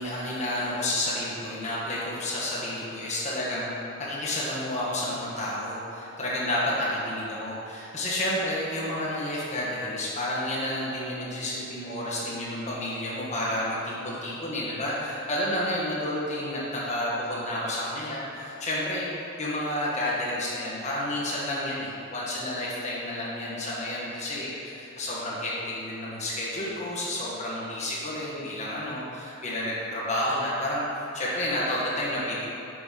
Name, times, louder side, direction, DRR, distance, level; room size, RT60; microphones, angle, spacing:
voice 1, 0.0-3.7 4.0-19.1 19.4-24.5 25.0-30.8 31.1-32.4, left 1 dB, 35° left, -7 dB, 1.4 m, -30 dB
7.7 x 6.0 x 3.8 m, 2.8 s
head